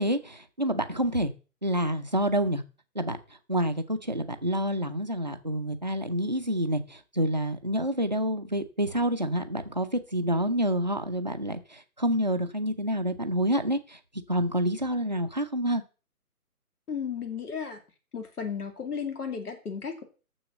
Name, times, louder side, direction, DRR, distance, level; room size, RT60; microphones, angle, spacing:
voice 1, 0.0-1.3 1.6-2.6 3.0-3.2 3.5-14.0 14.3-15.8, equal, 30° right, 7 dB, 0.5 m, -28 dB
voice 2, 16.9-17.8 18.1-20.0, left 6 dB, 75° left, 5 dB, 2.5 m, -34 dB
7.0 x 6.8 x 7.6 m, 0.35 s
hypercardioid pair, 175°, 45 cm